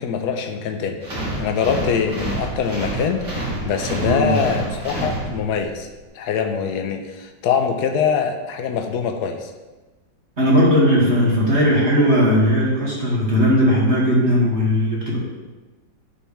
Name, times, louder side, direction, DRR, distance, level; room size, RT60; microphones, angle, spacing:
voice 1, 0.0-5.9 6.1-9.5, left 6 dB, 65° left, 5 dB, 1.3 m, -23 dB
sound 1, 1.0-5.7, right 1 dB, 65° right, 3.7 m, -28 dB
voice 2, 4.0-4.4 10.4-15.2, equal, 35° right, -6 dB, 2.5 m, -17 dB
11.5 x 5.4 x 3.4 m, 1.2 s
omnidirectional pair, 2.0 m